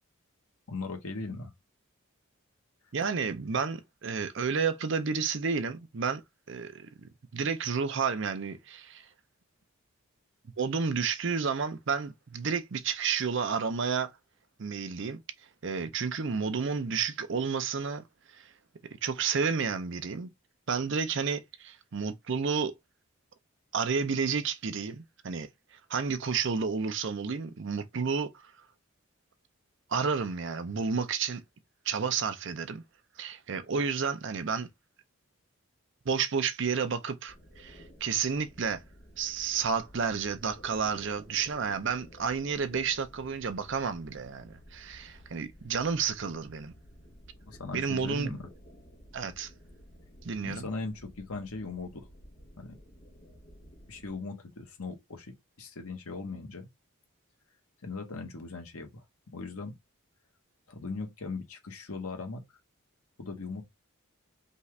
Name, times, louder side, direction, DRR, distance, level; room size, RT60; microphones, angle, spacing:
voice 1, 0.7-1.5 47.4-48.5 50.4-52.1 52.6-52.8 53.9-56.7 57.8-59.0 59.3-59.7 60.7-62.4 63.2-63.6, left 3 dB, 85° left, 1.3 m, -39 dB
voice 2, 2.9-6.2 6.5-9.1 10.6-14.1 14.6-15.2 15.6-18.0 18.3-18.5 19.0-20.3 20.7-22.7 23.7-25.5 25.9-28.3 29.9-31.4 31.9-32.8 33.2-34.7 36.1-38.8 39.2-46.7 47.7-48.4 49.1-49.5 50.2-50.6, right 5 dB, 55° right, 0.5 m, -31 dB
sound 1, 37.3-54.2, equal, 30° left, 0.9 m, -53 dB
5.3 x 2.4 x 3.2 m
head